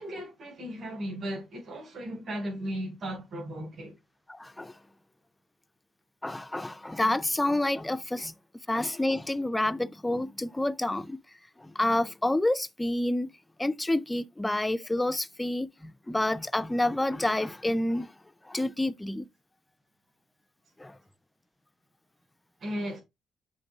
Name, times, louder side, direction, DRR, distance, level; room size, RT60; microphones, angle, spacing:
voice 1, 0.0-4.0 22.6-23.0, equal, 50° right, 4.5 m, -36 dB
voice 2, 4.3-4.7 6.2-8.3 8.7-11.2 11.6-13.3 13.6-18.1 18.5-19.3 20.8-21.0, left 1 dB, 10° left, 0.3 m, -28 dB
7.9 x 3.8 x 3.4 m
cardioid pair, 140°, 0 cm